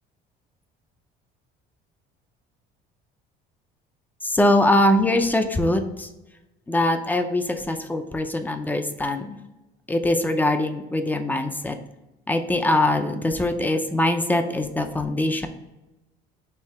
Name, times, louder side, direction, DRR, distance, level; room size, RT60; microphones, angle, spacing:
voice 1, 4.2-6.1 6.7-9.4 9.9-11.8 12.3-15.5, left 1 dB, 10° left, 7 dB, 0.5 m, -22 dB
4.5 x 2.9 x 3.4 m, 0.99 s
cardioid pair, 105°, 18 cm